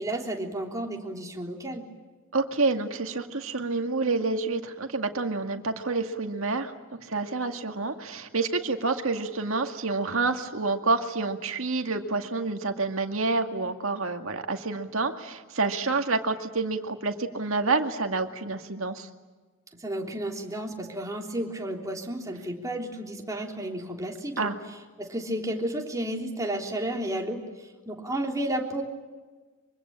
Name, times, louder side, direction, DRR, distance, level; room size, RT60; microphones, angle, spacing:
voice 1, 0.0-1.9 19.8-24.5 25.0-28.8, right 1 dB, 15° right, 1 dB, 3.4 m, -32 dB
voice 2, 2.3-19.1 24.4-24.6, right 3 dB, 70° right, 5 dB, 2.1 m, -28 dB
24.5 x 24.5 x 8.8 m, 1.3 s
head